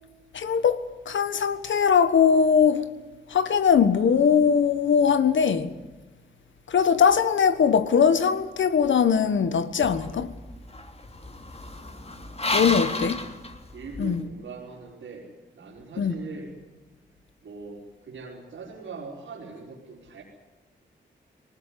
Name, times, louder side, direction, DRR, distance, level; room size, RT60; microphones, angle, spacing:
voice 1, 0.3-2.9 3.3-5.7 6.7-10.3 12.5-13.2 14.0-14.2 16.0-16.1, left 7 dB, 75° left, 1.5 m, -21 dB
sound 1, 9.8-14.2, left 2 dB, 30° left, 2.8 m, -32 dB
voice 2, 11.6-13.2 13.7-16.6 17.4-20.2, right 4 dB, 80° right, 5.0 m, -42 dB
20.0 x 19.0 x 9.5 m
cardioid pair, 50°, 20 cm